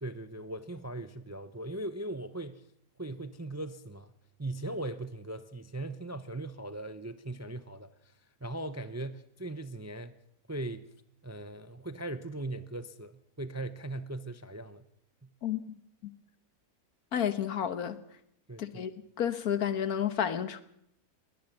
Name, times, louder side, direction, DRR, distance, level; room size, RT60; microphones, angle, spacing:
voice 1, 0.0-2.7 3.0-4.1 4.4-10.2 10.5-10.9 11.2-14.9 15.2-15.3 18.5-18.9, right 2 dB, 20° right, 0.5 m, -39 dB
voice 2, 15.4-16.1 17.1-18.0 18.6-18.9 19.2-20.6, left 9 dB, 75° left, 1.7 m, -31 dB
20.5 x 20.0 x 7.4 m
omnidirectional pair, 1.6 m